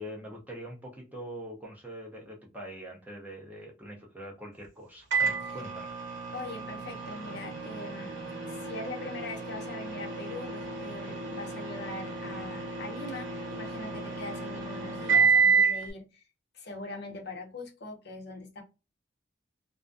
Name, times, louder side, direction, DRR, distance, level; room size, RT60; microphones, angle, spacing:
voice 1, 0.0-6.0, equal, 10° right, 0.5 m, -43 dB
Microwave oven, 5.1-15.9, right 5 dB, 65° right, 0.8 m, -30 dB
voice 2, 6.3-16.2 16.5-18.6, left 2 dB, 55° left, 0.7 m, -42 dB
2.4 x 2.2 x 2.5 m
head